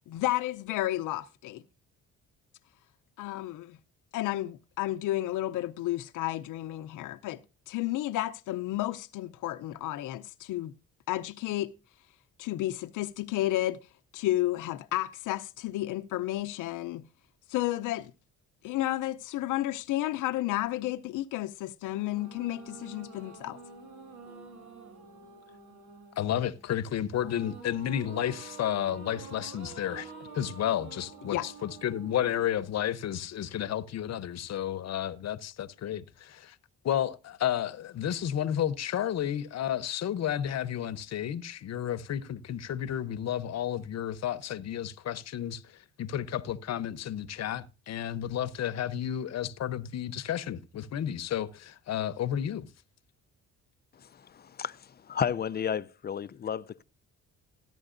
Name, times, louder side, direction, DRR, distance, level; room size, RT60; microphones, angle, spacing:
voice 1, 0.1-1.6 3.2-3.8 4.1-7.4 7.7-10.7 11.1-11.7 12.4-13.8 14.1-17.1 17.5-18.1 18.6-23.6 31.3-31.5, left 15 dB, 85° left, 0.6 m, -32 dB
sound 1, 21.9-33.3, right 4 dB, 80° right, 2.6 m, -48 dB
voice 2, 26.2-36.6 36.8-52.7, left 10 dB, 60° left, 0.8 m, -32 dB
voice 3, 54.0-56.8, left 8 dB, 35° left, 0.5 m, -33 dB
14.5 x 10.5 x 2.5 m
cardioid pair, 90°, 30 cm